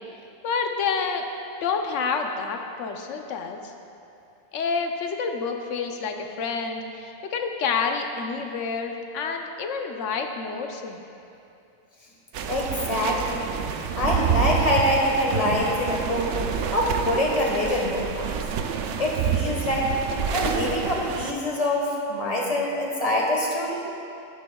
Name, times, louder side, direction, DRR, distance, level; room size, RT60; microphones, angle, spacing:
voice 1, 0.4-1.3 1.6-3.6 4.5-11.0, left 5 dB, 65° left, 4 dB, 1.0 m, -28 dB
sound 1, 12.3-21.3, right 7 dB, 65° right, 0.8 m, -28 dB
voice 2, 12.5-13.5 14.0-16.3 16.7-18.3 19.0-19.9 20.3-23.8, left 1 dB, 30° left, -2 dB, 1.3 m, -25 dB
12.5 x 10.0 x 2.3 m, 2.7 s
omnidirectional pair, 1.4 m